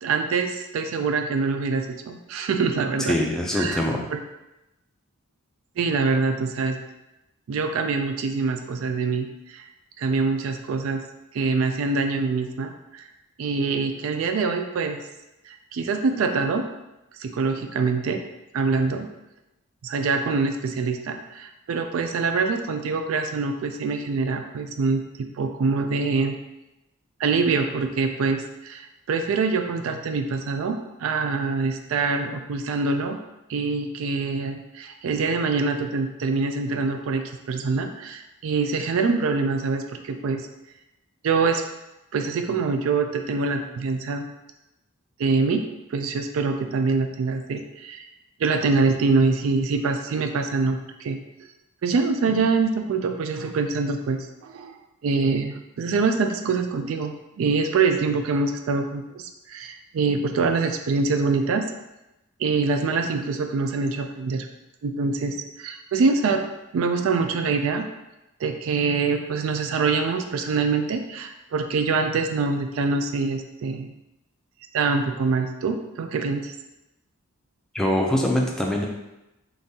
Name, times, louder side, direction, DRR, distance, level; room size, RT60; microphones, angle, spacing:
voice 1, 0.0-3.2 3.5-3.8 4.1-4.2 5.8-6.8 7.5-9.7 10.0-11.0 11.3-13.1 13.4-15.0 15.5-16.6 17.2-18.2 18.5-19.1 19.8-25.0 25.4-26.4 27.2-33.2 33.5-37.2 37.5-40.5 41.2-41.6 42.1-44.2 45.2-45.6 45.9-48.0 48.4-51.2 51.8-54.8 55.0-57.1 57.4-61.7 62.4-64.5 64.8-66.4 66.7-67.9 68.4-73.9 74.7-76.5, right 4 dB, 70° right, 6 dB, 0.3 m, -24 dB
voice 2, 3.1-4.0 77.7-78.9, left 1 dB, 5° left, -1 dB, 0.4 m, -23 dB
3.8 x 3.4 x 2.7 m, 0.95 s
head